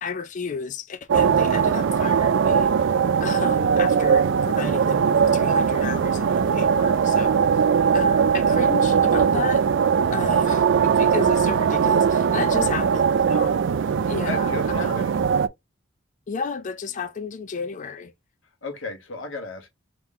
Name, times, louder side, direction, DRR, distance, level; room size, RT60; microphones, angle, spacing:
voice 1, 0.0-2.9 3.2-7.7 7.9-9.6 10.1-13.6 14.1-15.0 16.3-18.1, left 5 dB, 40° left, 0.4 m, -33 dB
sound 1, 1.1-15.5, right 6 dB, 60° right, 0.3 m, -20 dB
voice 2, 12.6-13.0 14.3-15.2 18.6-19.7, left 3 dB, 65° left, 1.1 m, -35 dB
3.7 x 3.0 x 3.5 m
head